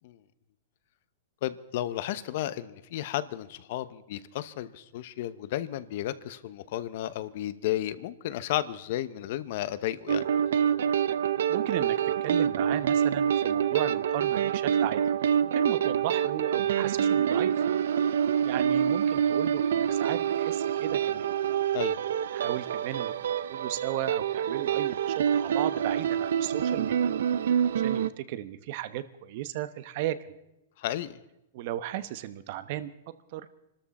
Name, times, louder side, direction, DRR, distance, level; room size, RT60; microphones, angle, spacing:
voice 1, 1.4-10.3 21.7-22.0 30.8-31.2, left 13 dB, 55° left, 15 dB, 0.8 m, -33 dB
sound 1, 10.1-28.1, right 8 dB, 75° right, 0.6 m, -26 dB
voice 2, 11.5-15.0 15.4-17.5 18.4-21.2 22.3-23.1 23.5-27.0 27.8-30.2 31.5-32.9 33.3-33.5, right 13 dB, 50° right, 13 dB, 1.0 m, -35 dB
25.5 x 13.0 x 4.2 m, 0.90 s
hypercardioid pair, 145°, 0 cm